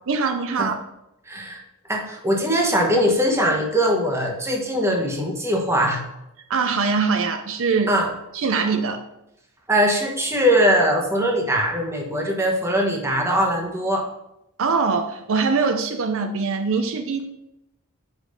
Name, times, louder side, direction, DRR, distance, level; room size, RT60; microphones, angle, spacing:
voice 1, 0.1-0.7 6.5-7.9 8.3-9.0 14.6-17.2, right 4 dB, 65° right, 6 dB, 0.5 m, -22 dB
voice 2, 1.3-1.6 1.9-6.0 7.9-8.1 9.7-14.0, equal, 10° right, 0 dB, 1.1 m, -21 dB
5.2 x 5.1 x 5.3 m, 0.87 s
head